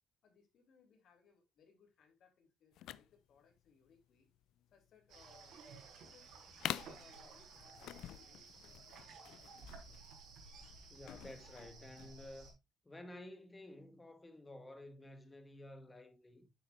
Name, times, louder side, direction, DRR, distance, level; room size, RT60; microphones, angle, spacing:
voice 1, 0.2-4.3 4.7-5.7 6.0-6.4 6.8-8.8, left 6 dB, 70° left, 3.6 m, -68 dB
sound 1, 2.7-12.2, left 13 dB, 85° left, 0.4 m, -48 dB
sound 2, 5.1-12.5, right 4 dB, 80° right, 4.4 m, -56 dB
voice 2, 10.9-12.6 12.8-16.5, left 1 dB, 20° left, 2.0 m, -53 dB
10.0 x 7.6 x 2.7 m
cardioid pair, 90°, 0 cm